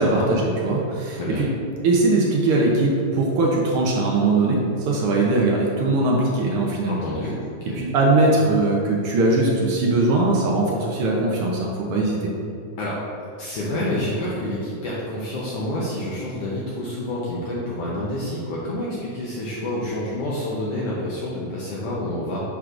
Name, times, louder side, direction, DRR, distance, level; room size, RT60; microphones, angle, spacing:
voice 1, 0.0-1.5 1.8-7.0 7.7-12.3, right 2 dB, 85° right, -2 dB, 1.2 m, -20 dB
voice 2, 1.1-1.4 6.9-7.3 7.6-7.8 12.8-13.0 13.4-22.4, left 1 dB, 70° left, -6 dB, 1.5 m, -28 dB
9.3 x 4.7 x 2.5 m, 2.6 s
omnidirectional pair, 3.5 m